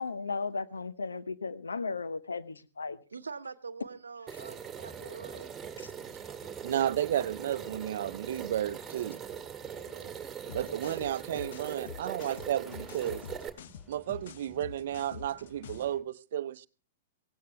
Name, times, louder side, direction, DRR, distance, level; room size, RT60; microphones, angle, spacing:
voice 1, 0.0-3.0 5.8-5.9, left 4 dB, 85° left, 0.9 m, -35 dB
voice 2, 3.1-5.5 9.7-10.3, right 5 dB, 85° right, 0.9 m, -45 dB
sound 1, 4.3-13.5, right 8 dB, 15° right, 2.0 m, -42 dB
sound 2, 4.8-16.0, right 1 dB, 5° left, 2.7 m, -56 dB
voice 3, 6.6-9.2 10.5-13.3 13.9-16.7, right 11 dB, 60° right, 0.6 m, -32 dB
sound 3, 10.5-16.0, left 8 dB, 60° left, 0.6 m, -47 dB
17.5 x 16.0 x 3.4 m
hypercardioid pair, 110°, 0 cm